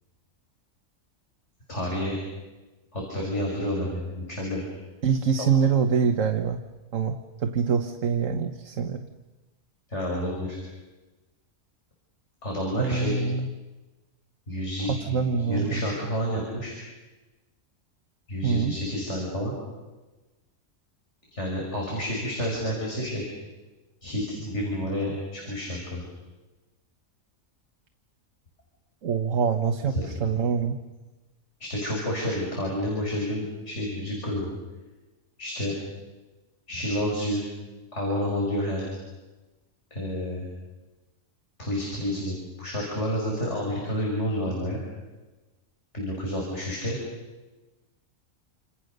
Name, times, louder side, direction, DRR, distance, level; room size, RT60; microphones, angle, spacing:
voice 1, 1.7-2.2 2.9-4.6 5.4-5.5 9.9-10.6 12.4-13.2 14.5-16.7 18.3-19.5 21.3-23.2 24.0-26.0 30.0-30.1 31.6-34.5 35.4-35.8 36.7-37.4 37.9-38.9 39.9-40.5 41.6-44.8 45.9-47.0, equal, 55° left, -2 dB, 6.0 m, -29 dB
voice 2, 5.0-6.6 6.9-9.1 12.8-13.5 14.9-15.8 18.4-18.7 29.0-30.8, right 6 dB, 70° right, 5 dB, 1.5 m, -25 dB
29.0 x 27.0 x 6.7 m, 1.2 s
omnidirectional pair, 1.4 m